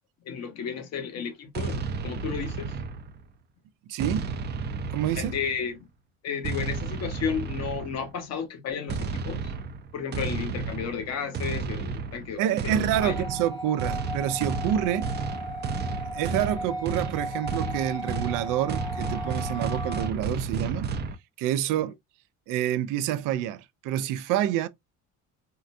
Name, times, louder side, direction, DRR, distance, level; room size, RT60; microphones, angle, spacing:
voice 1, 0.2-2.7 5.2-5.8 6.2-9.5 9.9-13.1 21.7-21.8, left 6 dB, 55° left, 1.0 m, -33 dB
sound 1, 1.5-3.3 4.0-5.7 6.4-8.1 8.9-21.2, right 4 dB, 35° right, 0.4 m, -32 dB
voice 2, 3.9-4.2 4.9-5.4 12.4-15.1 16.1-20.9 21.4-21.9 22.5-24.7, right 11 dB, 90° right, 0.5 m, -27 dB
sound 2, 12.9-20.1, equal, 15° left, 0.7 m, -36 dB
3.7 x 2.2 x 2.5 m
cardioid pair, 145°, 31 cm